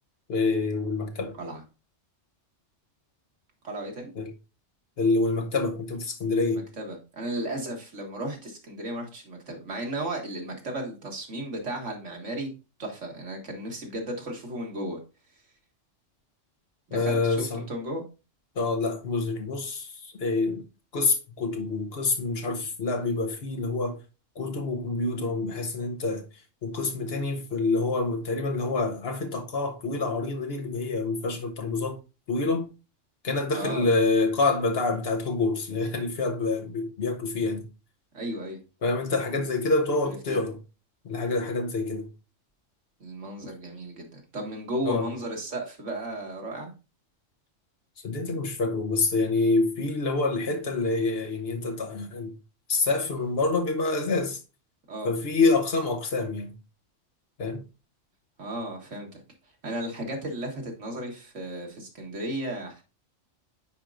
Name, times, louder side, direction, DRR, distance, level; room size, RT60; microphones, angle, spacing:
voice 1, 0.3-1.4 4.2-4.3 5.0-6.7 16.9-17.7 18.6-20.7 20.9-24.0 24.4-26.3 26.6-32.0 32.3-32.7 33.2-37.7 38.8-40.6 41.0-42.1 44.8-45.1 48.0-52.4 52.7-54.4 55.0-56.5 57.4-57.6, left 3 dB, 55° left, 1.0 m, -27 dB
voice 2, 3.6-4.1 6.5-12.5 12.8-15.0 16.9-18.0 33.5-33.9 38.1-38.6 40.3-40.4 43.0-46.7 54.9-55.1 58.4-59.2 59.6-62.8, right 1 dB, 70° right, 2.0 m, -34 dB
9.7 x 4.5 x 2.5 m
omnidirectional pair, 1.3 m